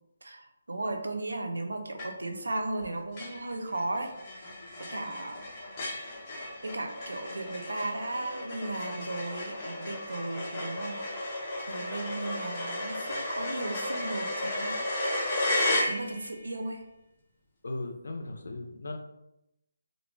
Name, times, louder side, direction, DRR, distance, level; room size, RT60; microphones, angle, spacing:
voice 1, 0.7-4.5 4.8-5.4 6.6-11.0 11.7-14.8 15.9-16.8, right 2 dB, 90° right, 4 dB, 0.5 m, -36 dB
sound 1, 2.0-2.4 2.8-2.9 3.2-16.4, left 1 dB, 30° left, 0.8 m, -34 dB
voice 2, 17.6-19.0, left 2 dB, 70° left, 4 dB, 0.5 m, -37 dB
2.4 x 2.1 x 3.1 m, 0.87 s
figure-of-eight pair, 160°, 0 cm